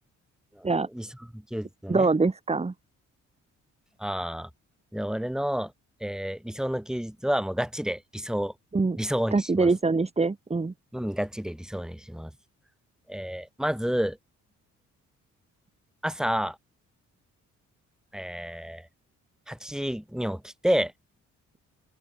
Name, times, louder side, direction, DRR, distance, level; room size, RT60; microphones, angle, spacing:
voice 1, 0.6-1.1 1.3-2.1 4.0-4.5 4.9-5.7 6.0-8.5 9.0-9.7 10.9-12.3 13.1-14.2 16.0-16.6 18.1-18.9 19.5-20.9, equal, ahead, 6.2 m, -30 dB
voice 2, 1.9-2.7 8.7-9.0 9.3-10.7, right 3 dB, 20° right, 2.5 m, -24 dB
open air
cardioid pair, 90°, 30 cm